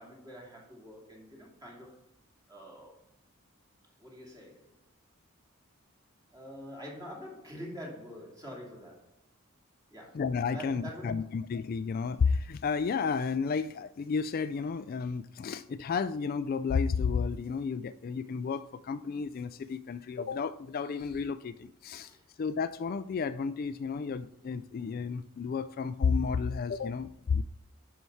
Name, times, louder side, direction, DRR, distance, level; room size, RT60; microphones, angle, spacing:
voice 1, 0.0-2.1 2.5-3.0 4.0-4.7 6.3-9.1 9.9-10.2 10.5-11.3 22.0-22.2, equal, 20° right, 2.7 m, -46 dB
voice 2, 10.1-27.4, left 5 dB, 45° left, 0.3 m, -32 dB
11.0 x 5.6 x 4.6 m
head